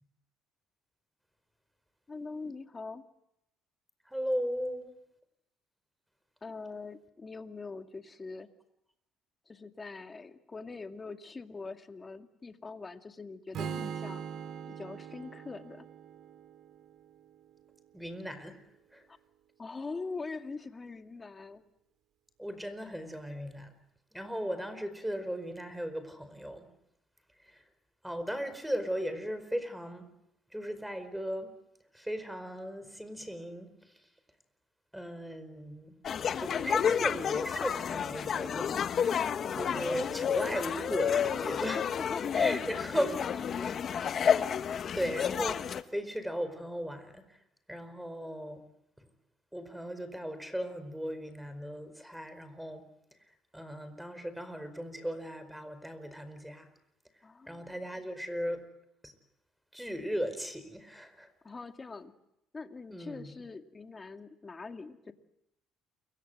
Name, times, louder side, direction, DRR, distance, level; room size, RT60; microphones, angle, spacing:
voice 1, 2.1-3.0 6.4-8.5 9.5-14.3 14.7-15.9 19.1-19.2 19.6-21.6 41.6-43.8 57.2-57.7 61.4-62.1 62.5-65.1, left 4 dB, 25° left, 7 dB, 2.3 m, -43 dB
voice 2, 4.0-4.9 17.9-18.6 18.9-19.0 22.4-23.7 24.1-26.7 27.5-27.6 28.0-30.0 30.5-31.5 31.9-33.7 34.9-36.0 36.4-39.1 39.5-41.8 42.3-43.1 44.9-47.2 47.7-48.6 49.5-52.8 53.5-56.7 57.5-58.6 59.0-59.1 59.7-61.3 62.9-63.3, equal, 5° right, 12 dB, 4.8 m, -37 dB
Strum, 13.5-17.7, right 7 dB, 55° right, 2.7 m, -42 dB
sound 1, 36.0-45.8, left 8 dB, 50° left, 1.3 m, -30 dB
29.0 x 24.0 x 7.9 m, 0.82 s
cardioid pair, 95°, 0 cm